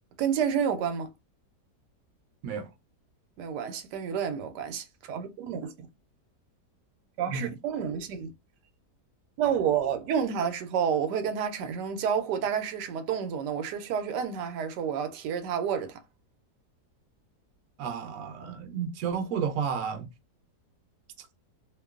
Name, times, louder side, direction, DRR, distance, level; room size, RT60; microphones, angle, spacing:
voice 1, 0.2-1.1 3.4-5.7 7.2-8.3 9.4-16.0, right 8 dB, 85° right, 1.2 m, -29 dB
voice 2, 17.8-20.1 21.2-21.3, right 6 dB, 65° right, 0.9 m, -32 dB
2.9 x 2.2 x 2.3 m
omnidirectional pair, 1.8 m